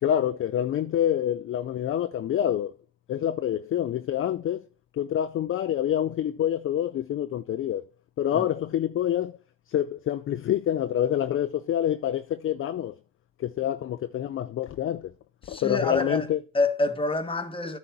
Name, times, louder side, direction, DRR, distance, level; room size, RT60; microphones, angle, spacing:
voice 1, 0.0-2.7 3.1-4.6 4.9-7.9 8.2-9.4 9.7-13.0 13.4-15.1 15.5-16.4, left 11 dB, 35° left, 0.5 m, -27 dB
voice 2, 15.4-16.3 16.5-17.8, left 2 dB, 15° left, 1.3 m, -27 dB
10.0 x 4.2 x 6.1 m
hypercardioid pair, 80°, 39 cm